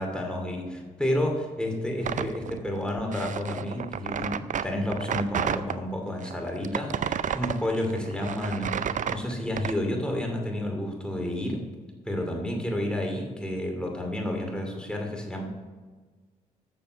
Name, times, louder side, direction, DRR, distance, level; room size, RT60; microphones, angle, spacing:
voice 1, 0.0-11.7 12.0-15.4, left 1 dB, 5° left, 0 dB, 2.6 m, -30 dB
sound 1, 2.0-5.8 6.2-9.8, right 8 dB, 50° right, 0.4 m, -31 dB
7.2 x 6.9 x 6.0 m, 1.4 s
supercardioid pair, 45°, 17 cm